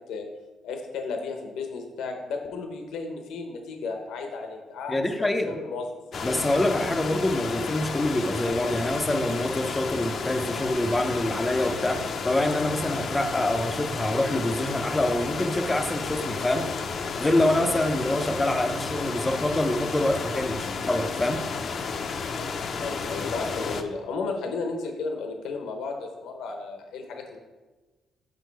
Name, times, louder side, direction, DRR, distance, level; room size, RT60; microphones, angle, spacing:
voice 1, 0.6-5.9 22.8-27.4, left 4 dB, 85° left, 3 dB, 0.9 m, -33 dB
voice 2, 4.9-5.6 6.2-16.7 17.2-21.4, left 1 dB, 15° left, 5 dB, 0.6 m, -26 dB
sound 1, 6.1-23.8, left 5 dB, 55° left, 0.6 m, -32 dB
6.4 x 5.1 x 4.6 m, 1.2 s
cardioid pair, 90°, 0 cm